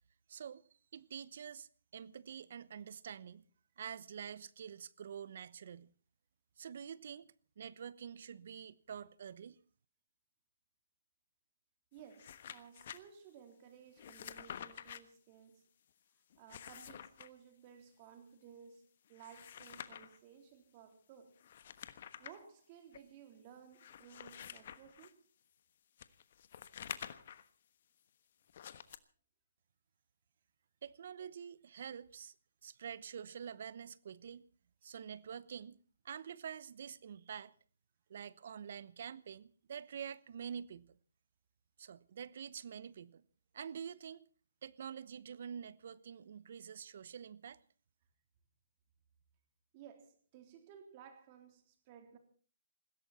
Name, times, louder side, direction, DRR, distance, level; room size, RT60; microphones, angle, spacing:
voice 1, 0.3-0.6 0.9-3.4 3.8-5.9 6.6-9.6 30.8-32.3 32.6-34.4 34.8-35.8 36.0-37.5 38.1-41.0 41.8-43.2 43.5-44.2 44.6-47.6, right 8 dB, 60° right, 1.0 m, -47 dB
voice 2, 11.9-15.7 16.4-21.3 22.2-25.2 49.7-52.2, right 8 dB, 35° right, 3.6 m, -57 dB
sound 1, 12.0-13.0 14.0-15.0 16.3-17.3 19.1-20.2 21.4-22.4 22.9-23.0 23.7-25.1 26.0-27.5 28.5-29.0, left 9 dB, 50° left, 1.2 m, -49 dB
20.5 x 16.5 x 4.2 m
hypercardioid pair, 145°, 0 cm